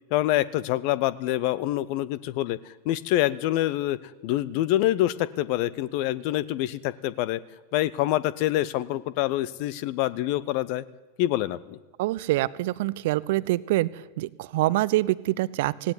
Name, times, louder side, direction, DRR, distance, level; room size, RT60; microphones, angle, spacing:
voice 1, 0.1-7.4 7.7-10.8 11.2-11.8, left 14 dB, 45° left, 18 dB, 0.9 m, -26 dB
voice 2, 12.0-13.9 14.2-15.9, right 17 dB, 50° right, 19 dB, 0.7 m, -25 dB
17.5 x 17.5 x 9.5 m, 1.1 s
figure-of-eight pair, 90°, 0 cm